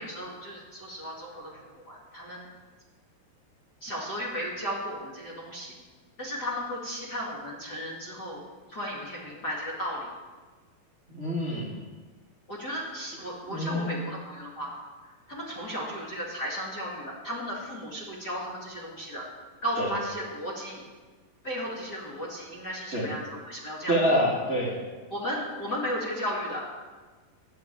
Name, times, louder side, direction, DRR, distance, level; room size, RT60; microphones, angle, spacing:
voice 1, 0.0-1.5 1.9-2.5 3.8-5.7 6.2-8.4 8.7-10.1 12.5-14.7 15.3-19.2 19.6-20.8 21.4-24.2 25.1-26.7, equal, 35° left, -5 dB, 1.9 m, -35 dB
voice 2, 11.1-11.7 13.5-13.9 19.8-19.9 22.9-23.0 23.9-24.7, equal, 30° right, -5 dB, 1.2 m, -26 dB
12.5 x 7.7 x 8.8 m, 1.4 s
omnidirectional pair, 4.9 m